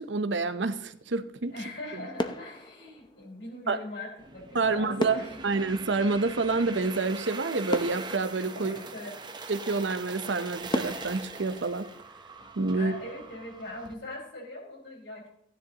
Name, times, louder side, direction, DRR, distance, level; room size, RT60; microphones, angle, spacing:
voice 1, 0.0-1.5 3.7-3.8 4.5-8.8 9.5-11.8 12.6-12.9, right 3 dB, 70° right, 11 dB, 0.8 m, -28 dB
voice 2, 1.5-5.5 8.5-9.2 12.7-15.3, left 1 dB, 70° left, -2 dB, 5.0 m, -41 dB
sound 1, 1.5-1.9 2.2-3.6 5.0-6.9 7.3-7.4 7.7-9.3 9.8-9.9 10.7-12.6 12.9-13.2, left 1 dB, 25° left, 0.7 m, -36 dB
sound 2, 4.2-13.9, right 3 dB, 25° right, 0.8 m, -42 dB
15.0 x 10.5 x 2.9 m, 0.78 s
head